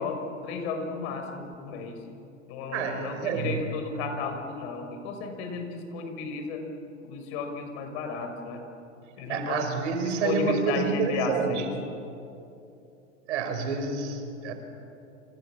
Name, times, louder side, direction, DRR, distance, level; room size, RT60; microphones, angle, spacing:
voice 1, 0.0-2.0 2.5-6.7 7.0-8.6 9.2-9.7 10.0-11.7, left 4 dB, 50° left, 5 dB, 6.2 m, -33 dB
voice 2, 2.7-3.6 9.3-11.7 13.3-14.5, right 5 dB, 60° right, 6 dB, 5.3 m, -28 dB
29.0 x 27.0 x 7.4 m, 2.7 s
hypercardioid pair, 95°, 39 cm